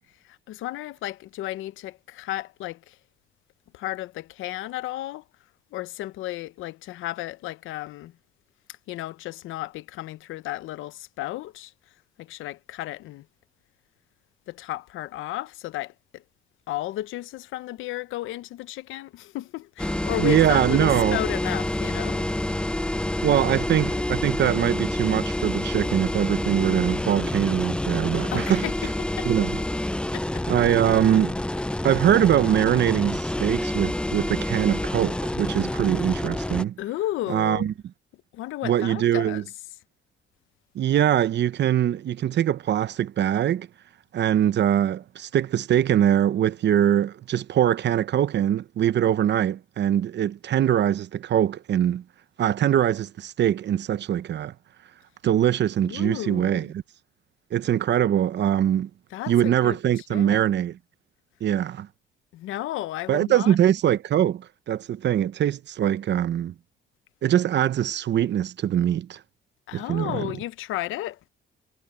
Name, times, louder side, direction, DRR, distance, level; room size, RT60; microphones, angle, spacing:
voice 1, 0.2-3.0 3.7-5.2 5.7-8.1 8.9-11.7 12.2-13.2 14.5-16.2 16.7-22.2 28.3-29.3 30.1-30.4 36.8-37.7 38.3-39.7 55.8-56.7 59.1-60.4 62.3-63.6 69.7-71.2, left 15 dB, 90° left, 0.8 m, -33 dB
sound 1, 19.8-36.6, left 1 dB, 5° left, 0.5 m, -28 dB
voice 2, 20.2-21.2 23.2-28.6 29.2-29.6 30.5-31.4 31.8-36.8 37.3-37.7 38.6-39.4 40.7-43.7 44.1-52.0 52.4-54.5 55.2-56.8 57.5-58.9 59.3-60.8 61.4-61.9 63.1-66.5 67.2-69.2 69.7-70.3, right 10 dB, 60° right, 0.9 m, -22 dB
cardioid pair, 90°, 20 cm